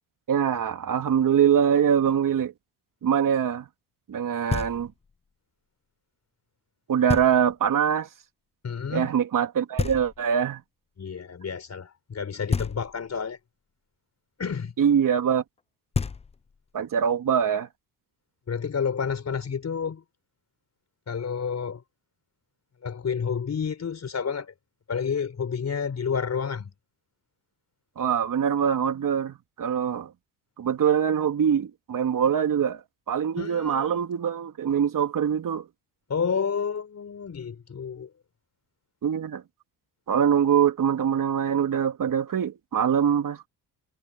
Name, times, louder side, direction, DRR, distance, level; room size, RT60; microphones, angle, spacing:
voice 1, 0.3-2.5 3.0-3.7 4.1-4.9 6.9-8.1 8.9-10.6 14.8-15.4 16.7-17.7 28.0-30.1 30.6-35.7 39.0-39.4 40.1-43.5, right 8 dB, 50° right, 2.9 m, -23 dB
Knock, 4.5-5.2 7.1-7.7 9.8-10.6 12.5-13.3 15.6-15.7 15.9-16.7, left 5 dB, 15° left, 0.5 m, -31 dB
voice 2, 8.6-9.1 11.0-13.4 14.4-14.7 18.5-20.0 21.1-21.8 22.8-24.5 24.9-26.7 33.4-34.0 36.1-38.1, left 6 dB, 40° left, 4.7 m, -30 dB
supercardioid pair, 80°, 41 cm